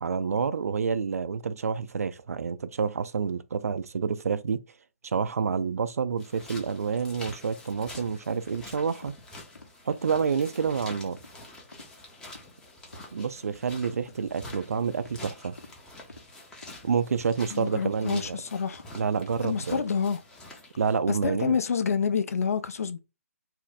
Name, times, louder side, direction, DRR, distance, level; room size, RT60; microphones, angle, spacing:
voice 1, 0.0-4.6 5.0-9.1 9.9-11.2 13.1-15.6 16.8-18.4 19.0-19.8 20.8-21.6, right 6 dB, 70° right, 0.4 m, -28 dB
sound 1, 6.2-21.0, left 2 dB, 10° left, 0.6 m, -47 dB
sound 2, 7.9-8.1 8.5-8.6 9.0-9.2 9.5-9.7 10.1-10.3 10.6-10.8 11.2-11.3 11.7-11.9 12.3-12.5 12.9-13.0 13.4-13.6 14.0-14.2 14.5-14.7 15.0-15.2 15.6-15.7 16.1-16.3 16.6-16.8 17.1-17.3 17.7-17.9 18.2-18.4 18.7-18.9 19.3-19.4 19.8-20.0, left 2 dB, 90° left, 0.8 m, -48 dB
voice 2, 17.5-18.8 19.4-20.2 21.1-23.0, left 6 dB, 65° left, 0.4 m, -28 dB
2.6 x 2.1 x 3.9 m
figure-of-eight pair, 140°, 8 cm